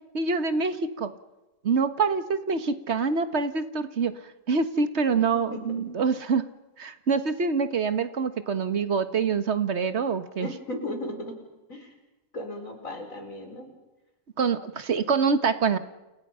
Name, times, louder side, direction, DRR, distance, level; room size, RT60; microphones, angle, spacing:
voice 1, 0.1-1.1 1.6-4.2 4.5-6.5 6.8-10.5 14.4-15.8, right 5 dB, 45° right, 10 dB, 1.6 m, -25 dB
voice 2, 5.5-5.8 10.4-11.4 11.7-11.9 12.3-13.7, left 1 dB, 60° left, 4 dB, 5.7 m, -36 dB
30.0 x 29.5 x 5.7 m, 1.0 s
omnidirectional pair, 1.6 m